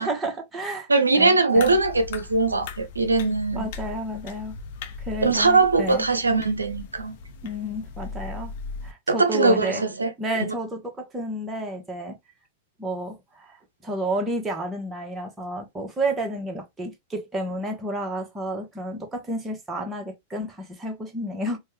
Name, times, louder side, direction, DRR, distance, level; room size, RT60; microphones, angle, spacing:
voice 1, 0.0-1.8 3.5-4.6 5.0-6.1 7.4-8.5 8.8-9.8 10.2-12.2 12.8-21.6, right 1 dB, 15° right, 1.1 m, -31 dB
voice 2, 0.9-3.7 5.2-7.2 9.1-10.1 10.4-10.5, right 3 dB, 80° right, 0.7 m, -21 dB
sound 1, 1.6-8.9, left 4 dB, 50° left, 0.6 m, -38 dB
4.3 x 2.3 x 3.1 m
figure-of-eight pair, 90°, 0 cm